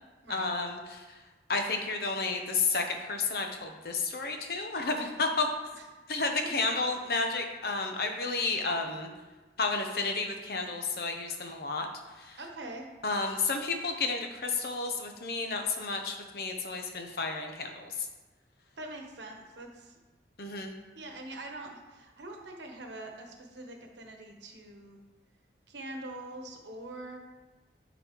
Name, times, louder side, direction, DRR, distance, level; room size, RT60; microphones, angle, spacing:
voice 1, 0.3-1.0 1.5-5.5 6.1-9.1 9.6-11.9 12.2-12.4 13.0-18.1 20.4-20.7, left 3 dB, 55° left, 4 dB, 0.7 m, -31 dB
voice 2, 12.4-12.9 18.8-20.0 20.9-25.0 25.7-27.2, right 2 dB, 85° right, 2 dB, 1.0 m, -43 dB
10.0 x 4.1 x 3.0 m, 1.2 s
head